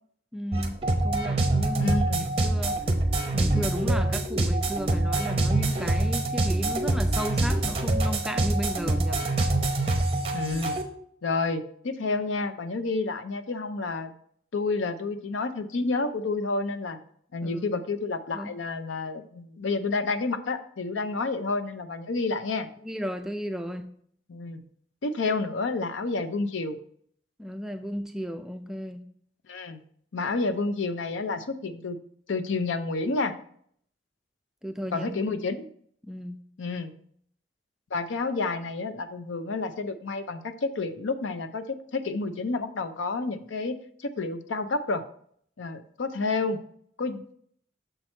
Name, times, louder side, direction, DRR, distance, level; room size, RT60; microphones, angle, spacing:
voice 1, 0.3-0.8 1.0-2.8 3.3-9.2 17.4-17.7 18.3-18.5 22.8-23.9 27.4-29.0 34.6-35.1 36.0-36.4, equal, 5° right, 6 dB, 0.3 m, -34 dB
sound 1, 0.5-10.8, right 2 dB, 30° right, 0.8 m, -25 dB
voice 2, 1.7-2.3 10.3-10.8 11.2-14.1 14.5-17.0 17.3-22.7 24.3-24.6 25.0-26.8 29.5-29.8 30.1-32.0 32.3-33.3 34.9-35.7 36.6-36.9 37.9-45.0 45.6-46.6 47.0-47.4, left 3 dB, 85° left, 10 dB, 0.6 m, -29 dB
6.7 x 4.3 x 4.4 m, 0.63 s
head